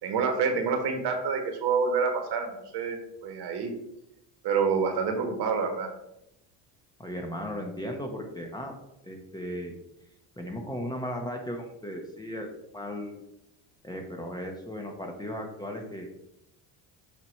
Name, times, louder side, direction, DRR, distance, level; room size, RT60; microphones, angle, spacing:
voice 1, 0.0-3.7 4.4-5.9, right 5 dB, 60° right, 4 dB, 1.6 m, -27 dB
voice 2, 7.0-8.7 9.0-9.7 10.4-13.2 13.8-16.1, equal, 10° left, 2 dB, 0.9 m, -36 dB
7.5 x 2.9 x 5.7 m, 0.83 s
cardioid pair, 120°, 46 cm